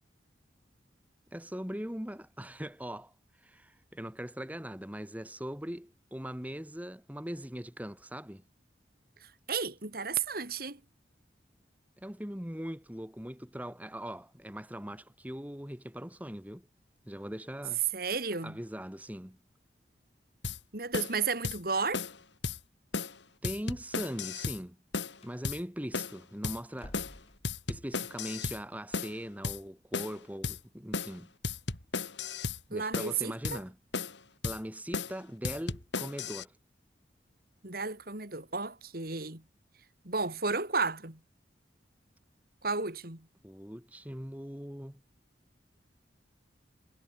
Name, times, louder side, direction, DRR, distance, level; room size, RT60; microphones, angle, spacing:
voice 1, 1.3-8.4 12.0-16.7 17.1-17.8 18.4-19.4 23.4-24.8 25.2-27.0 27.7-31.3 32.7-33.8 34.4-36.5 43.4-45.0, equal, 10° right, 2.1 m, -40 dB
voice 2, 9.5-10.8 17.9-18.6 20.7-22.0 32.7-33.6 37.6-39.4 40.0-41.2 42.6-43.2, right 4 dB, 55° right, 3.3 m, -33 dB
sound 1, 20.4-20.6 20.9-21.2 21.4-21.6 21.9-22.2 22.4-22.6 22.9-23.2 23.4-24.6 24.9-25.2 25.4-25.6 25.9-26.2 26.4-26.6 26.9-27.2 27.4-28.6 28.9-29.2 29.4-29.6 29.9-30.2 30.4-30.6 30.9-31.2 31.4-32.6 32.9-33.2 33.4-33.6 33.9-34.2 34.4-34.6 34.9-35.2 35.4-36.4, left 4 dB, 80° left, 3.5 m, -35 dB
Slam, 23.9-24.2 25.2-25.4 26.7-28.0, left 1 dB, 35° left, 3.4 m, -52 dB
head